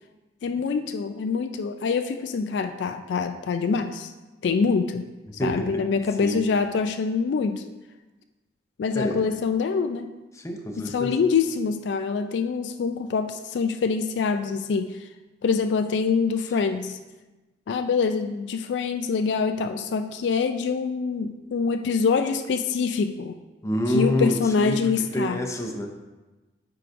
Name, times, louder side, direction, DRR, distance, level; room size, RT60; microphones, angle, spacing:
voice 1, 0.4-4.1 4.4-5.0 5.3-7.6 8.8-10.1 10.8-15.0 15.4-17.0 17.7-23.4 23.9-25.4, left 5 dB, 70° left, 8 dB, 0.3 m, -25 dB
voice 2, 5.4-5.8 6.2-6.4 8.9-9.3 10.3-11.2 23.6-25.9, equal, 15° left, 3 dB, 0.6 m, -27 dB
9.3 x 4.7 x 2.6 m, 1.1 s
head